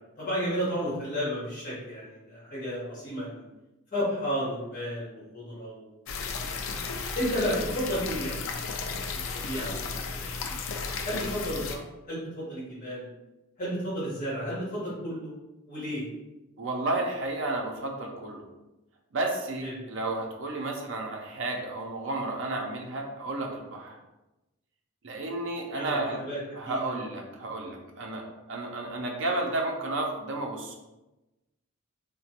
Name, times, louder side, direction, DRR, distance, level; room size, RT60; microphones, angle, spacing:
voice 1, 0.2-3.4 3.9-5.9 6.2-6.4 7.1-8.6 9.1-10.7 11.0-11.8 12.1-13.1 13.6-15.3 15.7-16.1 19.6-19.7 25.7-26.9, equal, 40° left, -7 dB, 1.1 m, -32 dB
sound 1, 6.1-11.8, left 4 dB, 70° left, 0.3 m, -34 dB
voice 2, 16.6-18.4 19.1-24.0 25.0-26.2 26.6-28.2 28.5-30.7, right 2 dB, 60° right, 1 dB, 0.5 m, -32 dB
2.9 x 2.1 x 2.8 m, 1.0 s
head